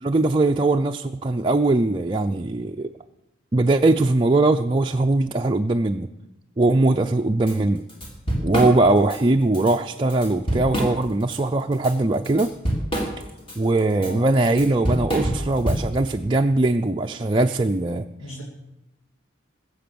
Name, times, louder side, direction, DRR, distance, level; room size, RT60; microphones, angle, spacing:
voice 1, 0.0-2.9 3.5-6.1 6.6-7.8 8.4-12.5 13.6-18.1, right 2 dB, 25° right, 3 dB, 0.5 m, -20 dB
Drum kit / Drum, 7.5-7.6 7.9-9.2 9.5-9.7 10.1-11.4 11.7-16.1, right 1 dB, 25° left, 3.4 m, -26 dB
voice 2, 14.0-14.3 18.2-18.4, right 1 dB, 90° left, -3 dB, 2.7 m, -36 dB
21.5 x 7.8 x 6.9 m, 0.92 s
head